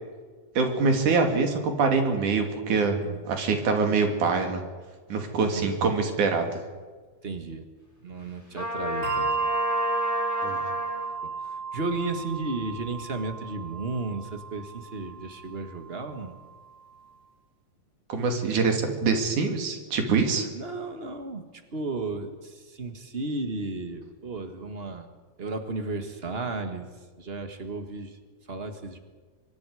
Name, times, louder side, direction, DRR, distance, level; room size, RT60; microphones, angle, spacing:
voice 1, 0.6-3.0 3.3-4.6 5.1-6.6 10.4-10.6 18.1-20.5, right 4 dB, 90° right, 4 dB, 4.0 m, -24 dB
voice 2, 7.2-7.7 8.0-9.5 11.2-11.3 11.7-16.4 20.5-21.4 21.7-25.1 25.4-26.9 27.2-28.2 28.5-29.0, right 3 dB, 25° right, 6 dB, 1.4 m, -34 dB
Trumpet, 8.5-11.1, left 1 dB, 5° left, 4.4 m, -30 dB
Bell, 9.0-15.9, right 4 dB, 60° right, 3.1 m, -33 dB
24.5 x 23.0 x 5.0 m, 1.4 s
omnidirectional pair, 3.4 m